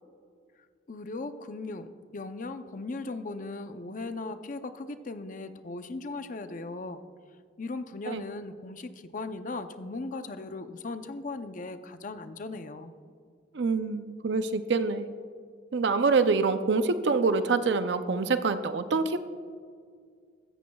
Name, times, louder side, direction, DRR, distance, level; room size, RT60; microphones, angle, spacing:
voice 1, 0.9-7.0 7.6-12.9, left 3 dB, 45° left, 9 dB, 0.6 m, -38 dB
voice 2, 13.5-15.1 15.7-19.2, right 4 dB, 70° right, 10 dB, 0.5 m, -26 dB
16.0 x 13.5 x 2.3 m, 2.1 s
head